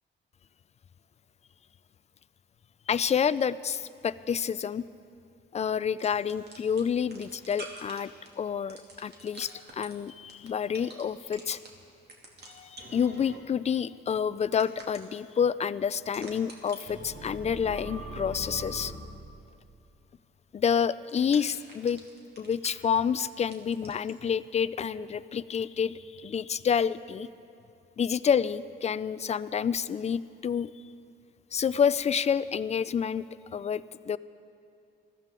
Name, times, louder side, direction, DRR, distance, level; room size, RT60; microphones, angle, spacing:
voice 1, 2.9-4.9 5.5-8.1 8.4-11.6 12.5-18.9 20.5-22.0 22.4-27.3 28.0-30.7 31.5-33.3 33.5-34.2, left 7 dB, 35° left, 17 dB, 0.4 m, -28 dB
sound 1, 6.0-6.8 7.1-8.0 8.3-8.4 8.7-11.0 11.3-11.7 12.1-13.4 14.6-15.2 16.1-18.9 21.0-23.2 23.5-24.1, right 2 dB, 55° right, 2.6 m, -42 dB
20.5 x 14.5 x 3.8 m, 2.6 s
cardioid pair, 90°, 20 cm